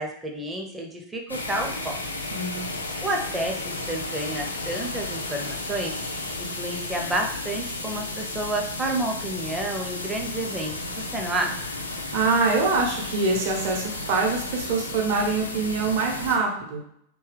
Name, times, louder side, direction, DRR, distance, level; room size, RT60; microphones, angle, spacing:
voice 1, 0.0-2.0 3.0-11.7, right 1 dB, 10° right, 1 dB, 0.6 m, -30 dB
sound 1, 1.3-16.4, left 2 dB, 80° left, 0.4 m, -33 dB
voice 2, 2.3-2.7 12.1-16.8, right 4 dB, 45° right, 0 dB, 0.8 m, -24 dB
2.8 x 2.3 x 3.2 m, 0.72 s
figure-of-eight pair, 90°, 0 cm